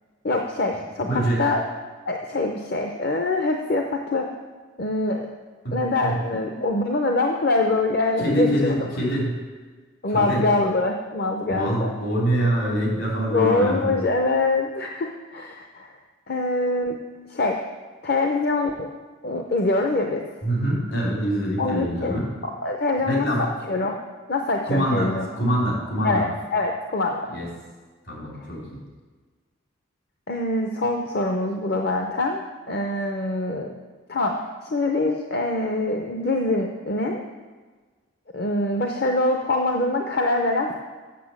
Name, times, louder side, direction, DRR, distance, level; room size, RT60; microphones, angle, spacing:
voice 1, 0.2-1.6 2.1-4.3 4.8-5.3 5.7-8.7 10.0-11.9 13.3-15.9 16.3-17.0 17.3-17.6 18.0-18.9 19.2-20.2 21.6-22.2 22.6-23.3 23.7-24.0 24.3-25.3 26.0-26.3 26.5-27.2 30.3-33.7 34.1-34.4 34.6-37.2 38.3-40.7, left 2 dB, 50° left, 3 dB, 0.6 m, -24 dB
voice 2, 1.0-1.5 5.6-6.2 8.2-9.4 10.1-10.5 11.5-14.0 20.4-22.3 23.0-23.5 24.7-26.2 27.3-27.5 28.1-28.8, equal, 75° left, -4 dB, 3.8 m, -25 dB
8.4 x 6.5 x 7.3 m, 1.4 s
head